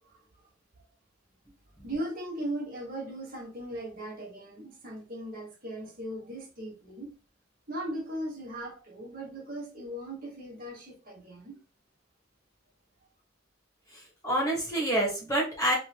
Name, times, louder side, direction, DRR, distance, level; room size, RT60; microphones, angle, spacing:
voice 1, 1.8-7.1 7.7-11.6, right 1 dB, 45° right, 1.3 m, -38 dB
voice 2, 13.9-15.7, right 1 dB, 15° left, 1.3 m, -28 dB
3.2 x 2.7 x 2.9 m
head